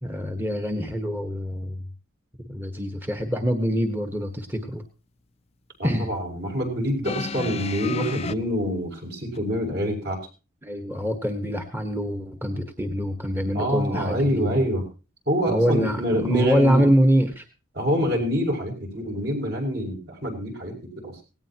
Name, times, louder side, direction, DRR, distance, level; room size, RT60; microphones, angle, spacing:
voice 1, 0.0-1.9 2.5-4.8 5.8-6.1 10.6-14.5 15.5-17.4, equal, 10° right, 5 dB, 1.4 m, -24 dB
voice 2, 5.8-10.2 13.5-14.8 15.3-16.9 17.7-21.2, equal, 55° right, 1 dB, 6.6 m, -26 dB
sound 1, 7.0-8.3 9.3-9.4, left 4 dB, 30° left, 0.6 m, -31 dB
18.0 x 17.5 x 3.0 m, 0.33 s
head